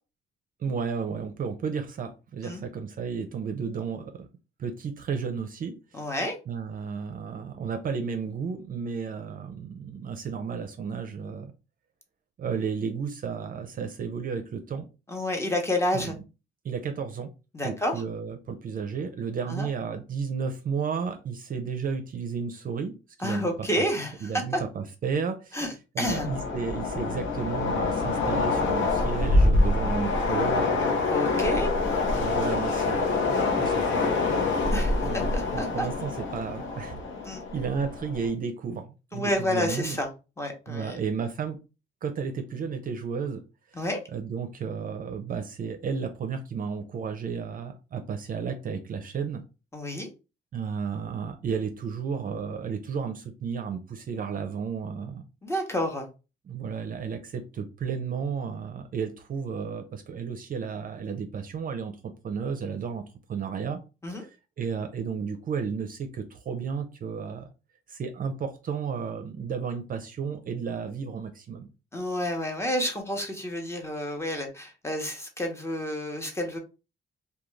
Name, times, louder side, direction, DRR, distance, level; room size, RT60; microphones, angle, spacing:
voice 1, 0.6-4.3 4.6-5.7 6.0-6.1 6.5-11.5 12.4-14.8 15.9-16.2 16.6-17.3 17.6-23.8 24.2-25.6 25.9-31.0 32.1-34.2 35.0-37.0 37.5-40.0 40.7-41.6 42.0-43.4 43.7-43.8 44.1-49.4 50.5-55.2 56.5-63.0 63.3-63.8 64.1-67.5 67.9-71.7, right 6 dB, 45° right, 7 dB, 0.5 m, -33 dB
voice 2, 5.9-6.4 15.1-16.2 17.5-17.9 19.5-19.7 23.2-24.6 25.5-26.3 31.1-31.7 34.7-35.9 37.2-37.4 39.1-40.1 40.4-41.0 43.7-44.0 49.7-50.1 55.4-56.1 64.0-64.3 71.9-76.6, left 1 dB, 15° left, 3 dB, 0.8 m, -29 dB
Train, 26.0-38.3, left 3 dB, 75° left, 0.7 m, -26 dB
2.4 x 2.3 x 3.1 m, 0.30 s
cardioid pair, 90°, 20 cm